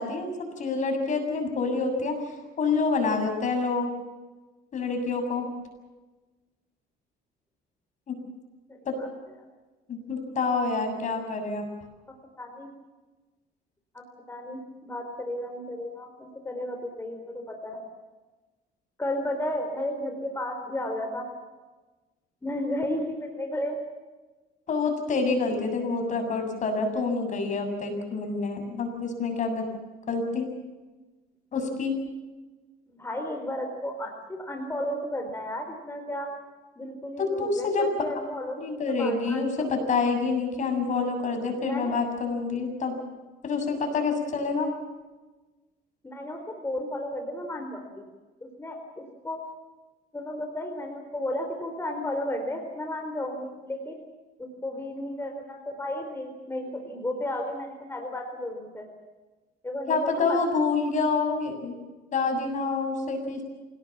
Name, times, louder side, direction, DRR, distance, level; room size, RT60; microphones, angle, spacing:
voice 1, 0.0-2.1 2.6-3.9 4.7-5.5 8.1-8.2 8.9-9.0 9.9-11.7 24.7-29.7 30.1-30.5 31.5-31.9 37.2-37.9 38.6-43.0 43.4-44.7 59.9-61.7 62.1-63.4, left 4 dB, 45° left, 5 dB, 7.3 m, -27 dB
voice 2, 8.7-9.1 12.4-12.7 13.9-17.8 19.0-21.2 22.4-23.8 33.0-36.3 36.8-39.9 41.6-42.0 46.0-48.0 48.4-49.4 50.1-54.0 54.4-58.8 59.6-60.4, left 1 dB, 15° left, 3 dB, 4.3 m, -33 dB
28.0 x 18.5 x 7.4 m, 1.2 s
cardioid pair, 110°, 17 cm